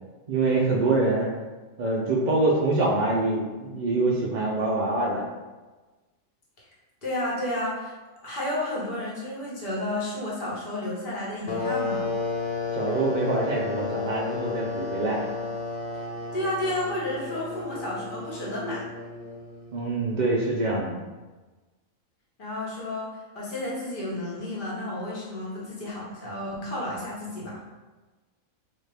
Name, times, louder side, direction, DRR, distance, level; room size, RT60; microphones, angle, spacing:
voice 1, 0.3-1.3 1.8-5.2 12.7-15.2 19.7-21.0, right 2 dB, 75° right, -3 dB, 0.4 m, -25 dB
voice 2, 7.0-7.9 8.2-12.1 16.3-18.8 22.4-23.1 23.3-27.6, left 1 dB, 40° left, -6 dB, 1.1 m, -31 dB
sound 1, 11.5-19.9, left 4 dB, 85° left, 0.4 m, -32 dB
4.1 x 2.4 x 3.3 m, 1.2 s
omnidirectional pair, 1.4 m